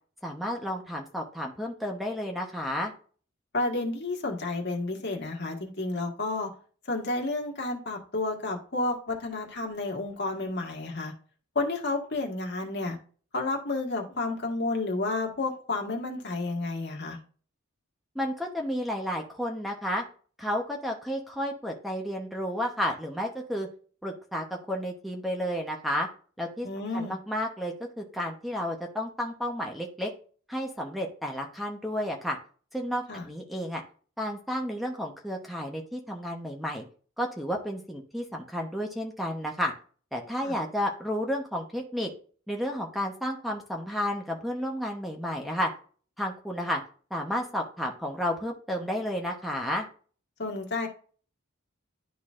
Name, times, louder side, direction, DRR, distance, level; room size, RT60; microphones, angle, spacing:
voice 1, 0.2-2.9 18.1-20.0 20.4-23.7 24.0-26.1 26.4-30.1 30.5-32.4 32.7-33.8 34.2-36.8 37.2-39.7 40.1-42.1 42.5-45.7 46.2-46.8 47.1-49.9, equal, ahead, 1 dB, 0.9 m, -32 dB
voice 2, 3.5-6.5 6.9-11.1 11.5-13.0 13.3-17.2 26.6-27.1 33.1-33.3 40.4-40.6 50.4-50.9, left 2 dB, 55° left, 1 dB, 1.7 m, -31 dB
11.5 x 4.0 x 2.5 m, 0.42 s
head